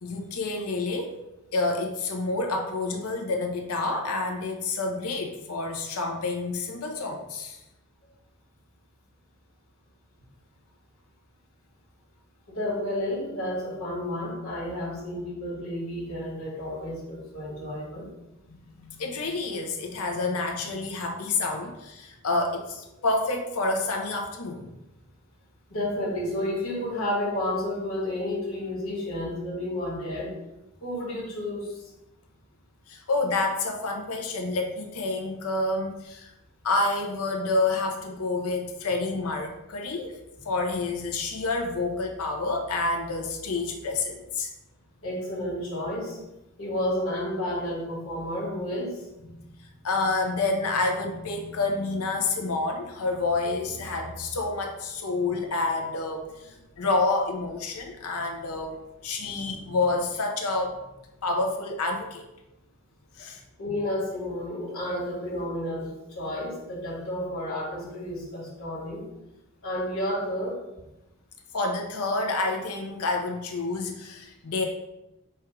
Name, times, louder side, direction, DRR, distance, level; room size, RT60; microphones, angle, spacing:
voice 1, 0.0-1.2 1.5-7.6 18.5-24.7 32.9-36.3 36.6-40.1 40.4-44.5 49.2-60.8 61.2-62.2 63.2-63.4 71.5-74.7, left 3 dB, 85° left, 3 dB, 0.7 m, -28 dB
voice 2, 12.5-18.1 22.9-23.0 25.7-30.3 30.8-31.9 45.0-46.2 46.6-49.1 63.6-69.0 69.6-70.6, left 1 dB, 65° left, -7 dB, 1.4 m, -31 dB
4.4 x 2.4 x 4.6 m, 0.94 s
head